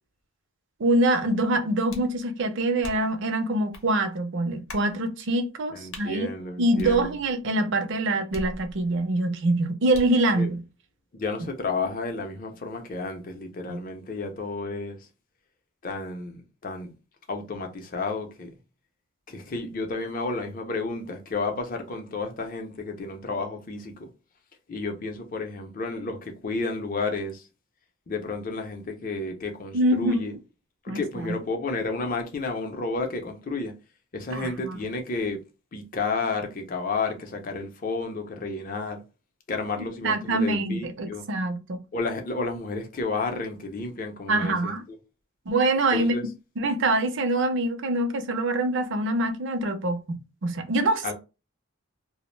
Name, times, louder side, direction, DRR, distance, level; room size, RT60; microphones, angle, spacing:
voice 1, 0.8-6.3 6.6-10.6 13.7-13.8 29.7-30.2 30.9-31.4 34.3-34.8 40.0-41.8 44.3-44.8 45.5-46.2 46.6-51.1, right 2 dB, 60° right, 0.5 m, -25 dB
sound 1, 1.9-2.2 2.8-3.2 3.7-3.9 4.7-4.9 5.9-6.1 6.8-7.4 8.3-9.0 9.9-10.2, left 1 dB, 80° left, 0.7 m, -40 dB
voice 2, 5.7-7.1 10.4-10.5 11.1-15.0 15.8-16.9 17.3-18.5 19.3-24.1 24.7-27.4 28.1-30.3 30.8-33.7 34.1-35.4 35.7-39.0 39.5-41.2 41.9-44.7 45.9-46.2 51.0-51.1, left 3 dB, 40° left, 0.5 m, -31 dB
2.4 x 2.0 x 3.1 m
head